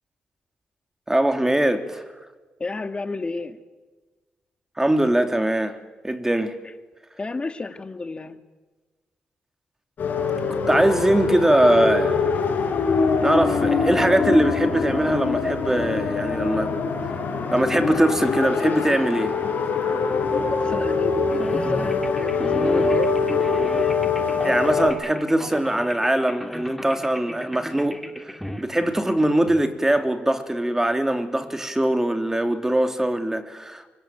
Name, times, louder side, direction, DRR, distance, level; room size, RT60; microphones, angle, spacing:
voice 1, 1.1-2.0 4.8-5.8 6.0-6.6 10.7-12.2 13.2-16.7 17.5-19.3 24.4-33.9, right 1 dB, 15° right, 3.1 m, -22 dB
voice 2, 2.6-3.6 7.2-8.4 20.6-23.4, left 3 dB, 30° left, 2.3 m, -31 dB
sound 1, 10.0-24.9, left 4 dB, 70° left, 5.7 m, -23 dB
sound 2, 21.3-29.6, equal, ahead, 3.2 m, -33 dB
24.5 x 24.0 x 9.2 m
cardioid pair, 60°, 3 cm